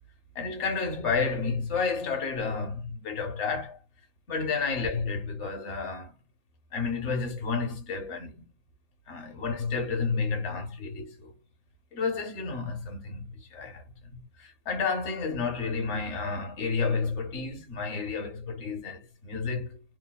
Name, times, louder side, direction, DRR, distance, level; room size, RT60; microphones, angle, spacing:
voice 1, 0.3-3.8 4.3-6.1 6.7-8.4 9.1-11.3 11.9-19.8, left 4 dB, 60° left, 1.1 m, -31 dB
2.7 x 2.0 x 2.2 m
omnidirectional pair, 1.4 m